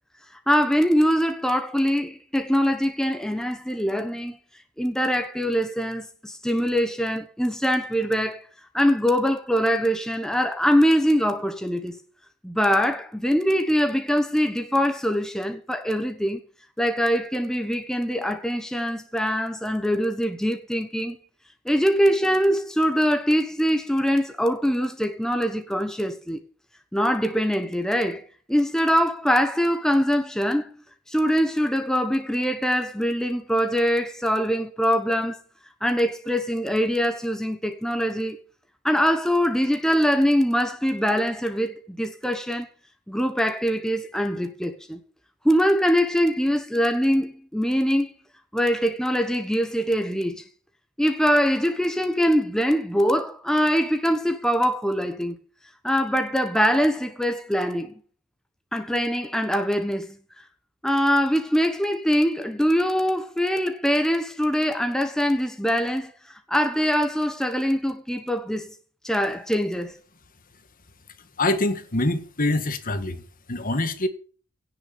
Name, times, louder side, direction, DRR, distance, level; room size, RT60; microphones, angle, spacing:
voice 1, 0.5-4.4 4.8-8.4 8.7-12.0 12.4-16.4 16.8-21.2 21.6-26.4 26.9-28.2 28.5-30.8 31.1-35.4 35.8-38.4 38.8-42.7 43.1-45.0 45.4-48.1 48.5-50.4 51.0-55.4 55.8-58.0 58.7-60.2 60.8-66.1 66.5-68.7 69.0-69.9, equal, 5° left, 1.1 m, -23 dB
voice 2, 71.4-73.2 73.5-74.1, left 2 dB, 40° left, 1.7 m, -24 dB
17.0 x 6.7 x 7.0 m
head